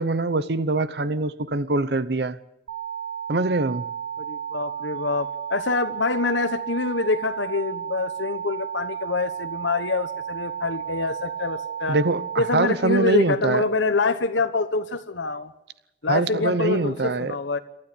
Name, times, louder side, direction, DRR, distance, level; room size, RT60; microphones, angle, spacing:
voice 1, 0.0-2.4 3.3-3.8 11.9-13.6 16.1-17.4, right 3 dB, 60° right, 15 dB, 0.8 m, -23 dB
sound 1, 2.7-12.7, right 10 dB, 85° right, 3.2 m, -33 dB
voice 2, 4.2-12.0 12.4-15.5 16.0-17.6, left 3 dB, 80° left, 9 dB, 1.2 m, -25 dB
28.0 x 13.0 x 8.5 m, 0.88 s
head